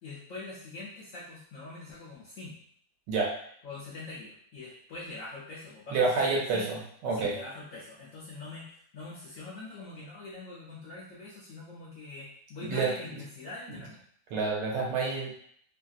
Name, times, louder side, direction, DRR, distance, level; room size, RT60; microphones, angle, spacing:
voice 1, 0.0-2.5 3.6-6.8 7.1-14.0, left 2 dB, 80° left, -6 dB, 0.7 m, -44 dB
voice 2, 5.9-7.3 12.7-13.2 14.3-15.5, right 4 dB, 70° right, -2 dB, 1.2 m, -29 dB
3.0 x 2.6 x 2.3 m, 0.64 s
omnidirectional pair, 2.1 m